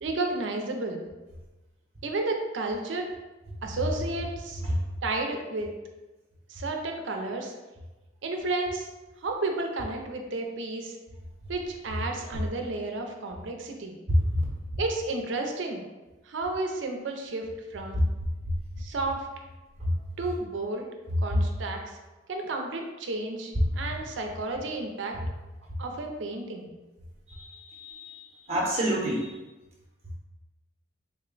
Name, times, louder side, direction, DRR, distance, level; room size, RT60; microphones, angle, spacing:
voice 1, 0.0-1.0 2.0-3.1 3.6-4.6 5.0-5.7 6.5-7.5 8.2-8.9 9.2-11.0 11.5-14.0 14.8-15.8 16.3-18.0 18.8-19.3 20.2-20.9 21.2-21.8 22.3-25.2 25.8-26.7, right 2 dB, 75° right, 3 dB, 0.5 m, -32 dB
voice 2, 27.7-29.3, right 1 dB, 35° right, -3 dB, 0.8 m, -29 dB
3.7 x 2.2 x 3.7 m, 1.1 s
head